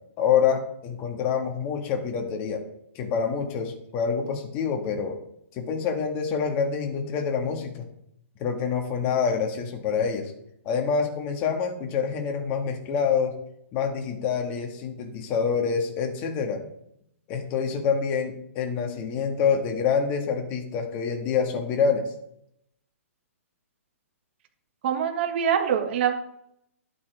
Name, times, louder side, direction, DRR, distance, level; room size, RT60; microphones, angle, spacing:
voice 1, 0.2-2.6 2.9-5.2 5.5-7.9 8.4-10.3 10.6-13.3 13.7-16.6 17.3-22.1, left 6 dB, 30° left, 3 dB, 1.8 m, -26 dB
voice 2, 24.8-26.1, right 8 dB, 45° right, 5 dB, 1.6 m, -24 dB
11.5 x 8.5 x 3.5 m, 0.75 s
hypercardioid pair, 150°, 8 cm